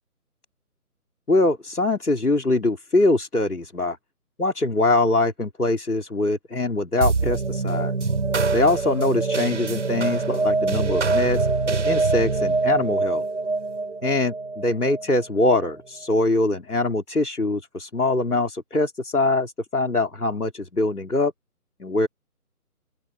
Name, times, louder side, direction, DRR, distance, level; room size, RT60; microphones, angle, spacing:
voice 1, 1.3-4.0 4.4-7.9 8.5-11.5 11.8-13.2 14.0-21.3 21.8-22.1, left 2 dB, 75° left, 3.5 m, -23 dB
sound 1, 7.0-15.7, right 3 dB, 50° right, 5.0 m, -24 dB
open air
figure-of-eight pair, 150°, 46 cm